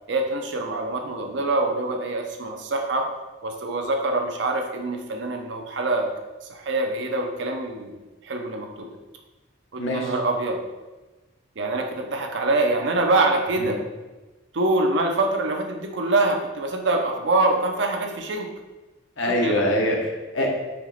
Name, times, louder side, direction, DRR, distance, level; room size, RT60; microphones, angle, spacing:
voice 1, 0.1-3.1 3.4-6.1 6.5-8.9 9.7-10.6 11.6-13.8 14.5-18.5 19.3-19.7, right 2 dB, 60° right, 3 dB, 0.6 m, -25 dB
voice 2, 9.8-10.1 13.6-13.7 19.2-20.5, left 1 dB, 70° left, 0 dB, 0.9 m, -24 dB
4.4 x 2.9 x 4.1 m, 1.2 s
head